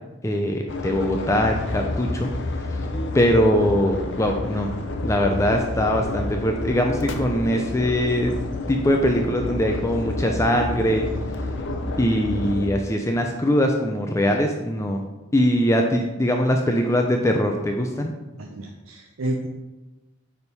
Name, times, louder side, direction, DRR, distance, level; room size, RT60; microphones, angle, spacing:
voice 1, 0.2-2.3 3.1-4.7 5.0-8.3 8.7-11.1 12.0-15.0 15.3-18.1, equal, 15° left, 2 dB, 0.4 m, -22 dB
sound 1, 0.7-12.7, left 2 dB, 60° left, 0.7 m, -29 dB
voice 2, 18.4-19.5, right 1 dB, 70° right, 1 dB, 0.6 m, -30 dB
9.0 x 3.5 x 4.1 m, 1.1 s
head